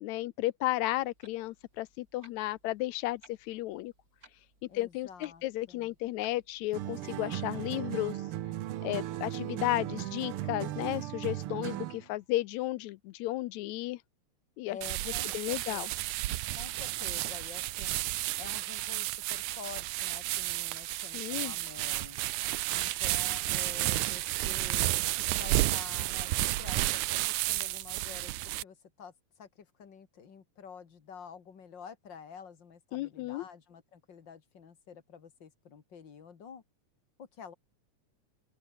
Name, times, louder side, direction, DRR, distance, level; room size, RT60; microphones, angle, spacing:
voice 1, 0.0-3.9 4.7-8.2 8.8-14.0 14.6-14.8 15.3-15.9 21.1-21.5 32.9-33.4, left 17 dB, 85° left, 1.9 m, -33 dB
Clock, 1.0-6.9, right 2 dB, 30° right, 6.6 m, -63 dB
voice 2, 4.7-5.9 14.7-15.9 16.3-18.0 18.4-22.2 22.7-24.9 25.4-36.6 37.2-37.5, left 7 dB, 40° left, 2.6 m, -49 dB
sound 1, 6.7-12.1, right 13 dB, 70° right, 1.4 m, -37 dB
sound 2, 14.8-28.6, right 17 dB, 85° right, 2.2 m, -32 dB
open air
omnidirectional pair, 3.3 m